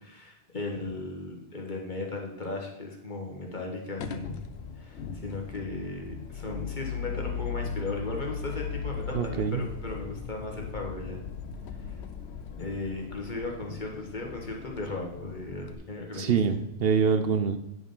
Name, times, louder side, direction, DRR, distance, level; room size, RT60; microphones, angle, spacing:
voice 1, 0.0-4.5 4.8-11.3 12.6-16.6, left 2 dB, 45° left, 1 dB, 1.7 m, -36 dB
sound 1, 4.0-15.7, left 6 dB, 75° left, 1.0 m, -38 dB
voice 2, 9.1-9.6 16.1-17.6, right 6 dB, 65° right, 9 dB, 0.8 m, -25 dB
9.2 x 4.9 x 5.4 m, 0.90 s
omnidirectional pair, 1.1 m